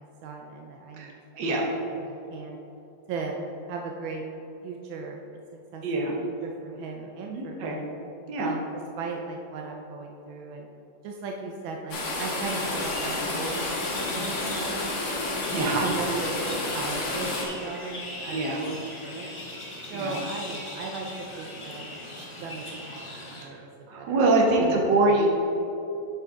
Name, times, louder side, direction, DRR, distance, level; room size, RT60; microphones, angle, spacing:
voice 1, 0.0-1.1 1.4-2.6 3.1-3.4 3.7-4.2 4.6-5.4 5.7-7.9 8.4-10.7 11.0-15.1 15.8-19.3 19.9-21.9 22.4-24.2 24.5-25.2, right 4 dB, 85° right, 1 dB, 1.4 m, -37 dB
voice 2, 1.0-1.7 5.8-6.1 7.3-7.8 8.3-8.5 15.5-15.9 18.3-18.6 19.9-20.2 23.1-23.2 23.9-25.3, right 2 dB, 65° right, -1 dB, 1.7 m, -24 dB
sound 1, 11.9-17.5, left 2 dB, 85° left, 2.2 m, -30 dB
sound 2, 12.4-23.4, left 1 dB, 45° left, 0.4 m, -40 dB
8.0 x 5.8 x 3.7 m, 3.0 s
omnidirectional pair, 2.1 m